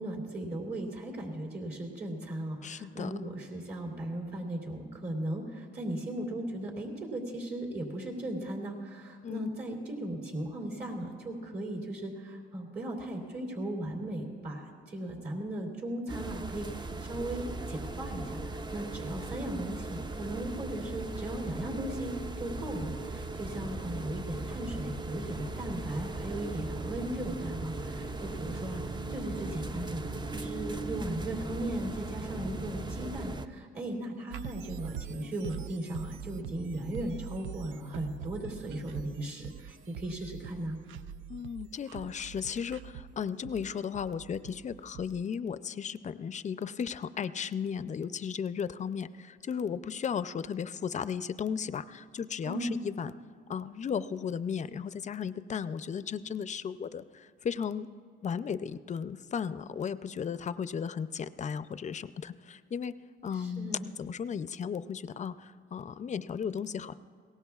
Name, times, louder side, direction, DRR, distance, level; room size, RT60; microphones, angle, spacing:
voice 1, 0.0-18.4 18.7-28.8 29.1-30.0 30.3-40.8 52.4-52.8 63.3-63.9, right 1 dB, 50° right, 0 dB, 3.2 m, -37 dB
voice 2, 2.6-3.1 9.2-9.5 41.3-53.1 53.5-57.9 58.2-63.0 63.2-66.9, left 7 dB, 35° left, 14 dB, 0.5 m, -35 dB
sound 1, 16.1-33.5, right 2 dB, 20° right, 0.6 m, -38 dB
sound 2, 34.3-45.2, right 9 dB, 80° right, 0.5 m, -44 dB
22.0 x 18.0 x 2.4 m, 2.1 s
cardioid pair, 90°, 20 cm